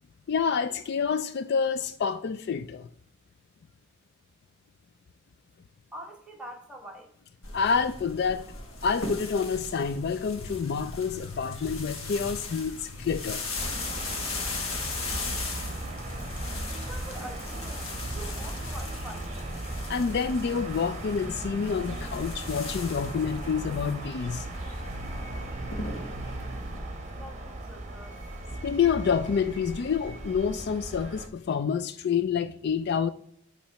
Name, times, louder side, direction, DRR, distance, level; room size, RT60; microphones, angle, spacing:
voice 1, 0.3-2.9 7.5-8.4 8.8-13.4 19.9-24.5 28.6-33.1, left 6 dB, 55° left, 0.3 m, -28 dB
voice 2, 5.9-7.1 16.7-19.5 27.1-28.6, right 1 dB, 5° right, 1.2 m, -45 dB
sound 1, 7.4-26.8, left 3 dB, 90° left, 1.4 m, -38 dB
sound 2, 13.6-31.3, right 2 dB, 35° right, 1.0 m, -37 dB
8.6 x 3.0 x 5.5 m
head